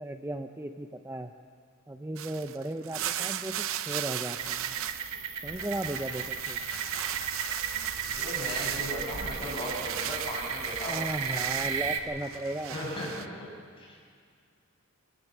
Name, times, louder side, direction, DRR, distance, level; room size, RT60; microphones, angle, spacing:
voice 1, 0.0-1.3 1.9-4.8 5.4-6.6 10.9-12.7, right 1 dB, 10° right, 6 dB, 0.6 m, -36 dB
sound 1, 2.2-5.2 5.4-11.8 12.2-13.3, right 11 dB, 65° right, 0.7 m, -37 dB
sound 2, 4.4-12.0, right 7 dB, 85° right, 1.5 m, -35 dB
sound 3, 5.5-13.3, left 1 dB, 75° left, 7.1 m, -49 dB
voice 2, 8.0-11.0 12.7-13.5 13.8-14.0, equal, 25° left, -3 dB, 6.6 m, -37 dB
23.5 x 16.0 x 7.3 m, 2.2 s
head